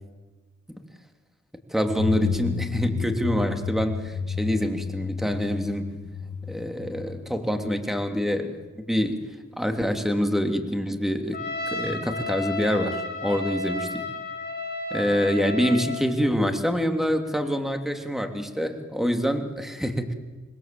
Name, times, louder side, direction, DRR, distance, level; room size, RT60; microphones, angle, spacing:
voice 1, 1.7-5.9 6.5-8.6 8.9-9.2 9.6-11.4 11.7-13.9 14.9-20.1, equal, ahead, 5 dB, 2.9 m, -26 dB
sound 1, 1.8-8.4, left 6 dB, 75° left, 1.8 m, -32 dB
Trumpet, 11.3-16.1, left 2 dB, 30° left, 7.7 m, -32 dB
26.5 x 20.5 x 7.7 m, 1.3 s
cardioid pair, 65°, 31 cm